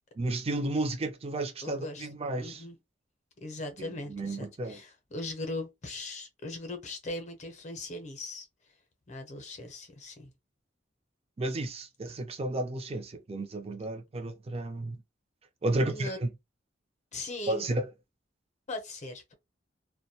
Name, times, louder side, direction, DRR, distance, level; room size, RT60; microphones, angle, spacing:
voice 1, 0.2-2.6 3.8-4.8 11.4-15.0 15.6-16.3 17.5-17.8, right 2 dB, 35° right, 0.5 m, -32 dB
voice 2, 1.6-2.1 2.4-2.8 3.4-8.5 9.1-10.3 15.9-16.2 17.1-17.7 18.7-19.3, left 2 dB, 40° left, 0.6 m, -39 dB
2.2 x 2.1 x 2.7 m
head